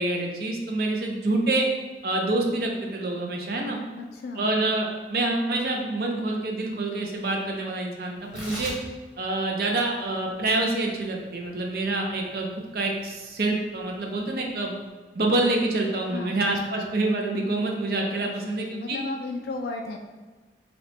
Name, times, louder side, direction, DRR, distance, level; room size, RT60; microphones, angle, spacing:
voice 1, 0.0-1.7 2.0-3.8 4.4-8.7 9.2-12.5 12.7-14.8 15.1-19.0, right 2 dB, 55° right, 1 dB, 0.5 m, -26 dB
voice 2, 3.9-4.6 16.1-16.5 18.3-20.0, left 3 dB, 60° left, 2 dB, 0.3 m, -34 dB
Tearing, 8.2-14.9, equal, 5° right, 0.8 m, -44 dB
2.9 x 2.1 x 4.1 m, 1.3 s
head